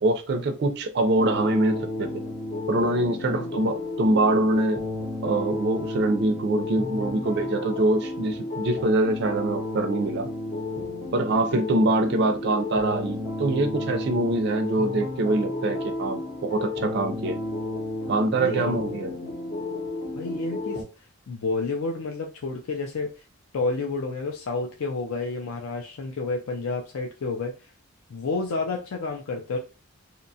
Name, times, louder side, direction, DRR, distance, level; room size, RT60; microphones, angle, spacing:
voice 1, 0.0-2.1 2.7-4.8 5.2-10.3 11.1-17.4 18.1-19.3, right 2 dB, 50° right, 0.3 m, -24 dB
sound 1, 1.1-20.8, left 2 dB, 40° left, 0.7 m, -32 dB
voice 2, 18.4-18.9 20.2-20.8 21.3-23.1 23.5-27.5 28.1-29.6, left 3 dB, 75° left, 0.4 m, -30 dB
2.7 x 2.1 x 2.7 m
head